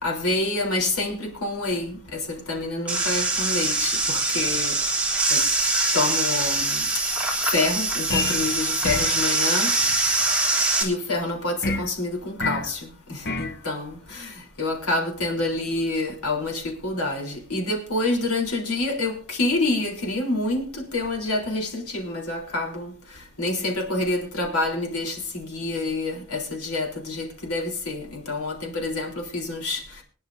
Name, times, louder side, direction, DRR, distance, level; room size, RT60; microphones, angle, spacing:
voice 1, 0.0-4.7 5.3-5.4 5.9-6.8 7.5-9.7 10.8-12.8 13.1-14.3 14.6-22.9 23.4-29.8, left 2 dB, 85° left, 3.7 m, -27 dB
sound 1, 2.9-10.8, right 2 dB, 5° right, 3.1 m, -23 dB
sound 2, 8.1-8.5 8.8-9.2 11.6-11.9 12.4-12.7 13.2-13.6, left 3 dB, 50° left, 0.8 m, -27 dB
24.5 x 10.5 x 2.7 m
head